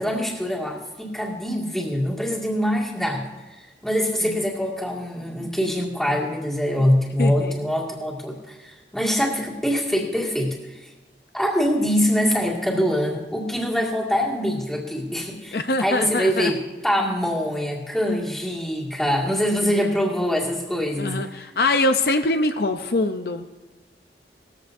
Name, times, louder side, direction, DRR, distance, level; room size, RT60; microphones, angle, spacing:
voice 1, 0.0-3.3 3.6-10.9 11.3-21.5, equal, ahead, -3 dB, 2.1 m, -24 dB
voice 2, 7.2-7.5 12.7-12.8 15.5-16.5 19.7-19.9 21.0-23.5, left 2 dB, 60° left, 7 dB, 0.6 m, -24 dB
19.5 x 14.5 x 2.7 m, 1.2 s
head